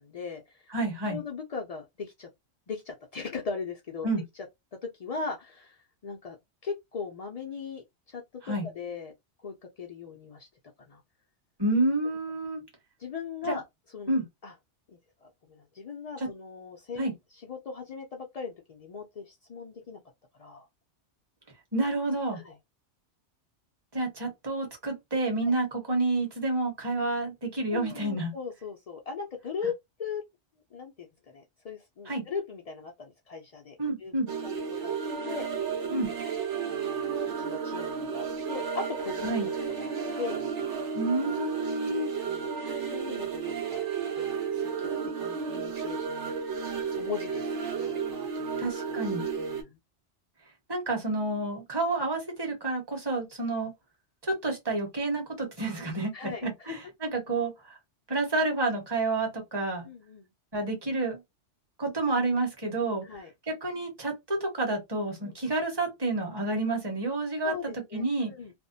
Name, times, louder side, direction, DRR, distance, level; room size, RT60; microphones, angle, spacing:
voice 1, 0.0-0.7 1.1-2.3 2.7-4.1 4.8-6.4 6.6-9.1 9.4-10.5 10.8-11.0 13.0-13.6 13.9-14.2 14.4-14.5 15.2-17.1 17.3-20.0 20.4-20.7 22.3-22.6 25.4-25.5 27.7-29.7 30.0-30.2 30.7-34.1 34.4-34.5 34.8-35.0 35.2-35.5 36.7-39.3 39.8-40.9 42.3-42.5 42.9-43.9 44.1-46.3 46.6-49.0 49.4-49.8 56.1-56.8 59.8-60.3 63.0-63.3 65.2-65.3 67.4-68.5, left 5 dB, 70° left, 0.3 m, -39 dB
voice 2, 0.7-1.2 4.0-4.2 8.4-8.7 11.6-12.6 13.4-13.6 14.1-14.2 16.2-16.3 17.0-17.1 21.7-22.4 23.9-28.3 32.1-32.2 33.8-34.3 35.9-36.1 39.2-39.5 40.9-42.1 48.6-49.3 50.7-53.7 54.2-57.8 58.1-59.9 60.5-61.2 61.8-63.0 63.5-68.3, right 2 dB, 25° right, 0.8 m, -29 dB
sound 1, 34.3-49.6, right 6 dB, 80° right, 1.1 m, -33 dB
2.5 x 2.1 x 2.5 m
omnidirectional pair, 1.2 m